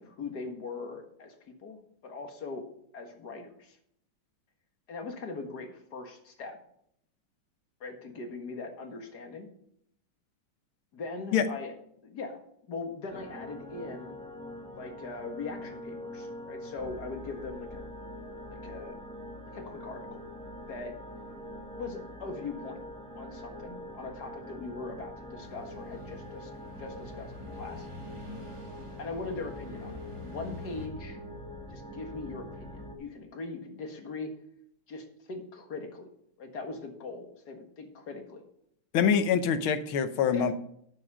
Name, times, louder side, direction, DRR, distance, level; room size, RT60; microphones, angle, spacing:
voice 1, 0.0-2.6 2.9-3.8 4.9-6.6 7.8-9.5 10.9-11.7 12.0-12.4 12.7-14.2 14.8-17.8 18.5-19.0 19.5-20.2 20.7-20.9 21.8-22.8 23.2-26.5 26.8-27.9 29.0-31.2 31.7-34.3 34.9-36.1 36.4-38.4 40.3-40.5, left 3 dB, 55° left, 4 dB, 2.2 m, -40 dB
sound 1, 13.1-32.9, left 1 dB, 5° left, 0.8 m, -44 dB
sound 2, 25.4-30.9, left 2 dB, 15° right, 1.7 m, -47 dB
voice 2, 38.9-40.5, left 7 dB, 90° left, 11 dB, 1.8 m, -25 dB
12.5 x 6.3 x 4.9 m, 0.70 s
omnidirectional pair, 2.2 m